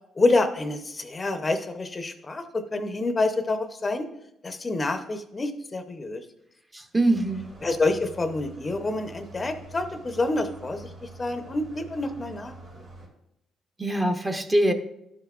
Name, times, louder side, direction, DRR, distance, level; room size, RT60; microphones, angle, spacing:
voice 1, 0.2-4.1 4.4-6.2 7.6-12.5, left 2 dB, 30° left, 8 dB, 0.6 m, -27 dB
voice 2, 6.7-7.5 13.8-14.7, right 1 dB, 20° right, 6 dB, 0.8 m, -23 dB
sound 1, 7.1-13.1, right 2 dB, 80° right, 2.1 m, -46 dB
11.5 x 5.7 x 2.4 m, 0.82 s
cardioid pair, 90°, 0 cm